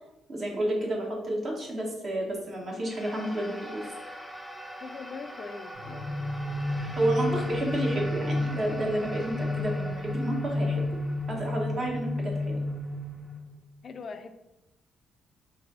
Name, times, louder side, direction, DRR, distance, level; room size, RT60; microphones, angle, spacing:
voice 1, 0.3-3.9 7.0-10.8 11.3-12.6, right 1 dB, 45° right, -1 dB, 1.2 m, -30 dB
sound 1, 2.8-13.3, equal, ahead, 0.6 m, -43 dB
voice 2, 4.8-6.4 13.8-14.3, left 4 dB, 50° left, 7 dB, 0.4 m, -42 dB
sound 2, 5.7-13.6, left 2 dB, 85° right, 1.4 m, -32 dB
4.0 x 2.6 x 4.0 m, 0.92 s
cardioid pair, 90°, 0 cm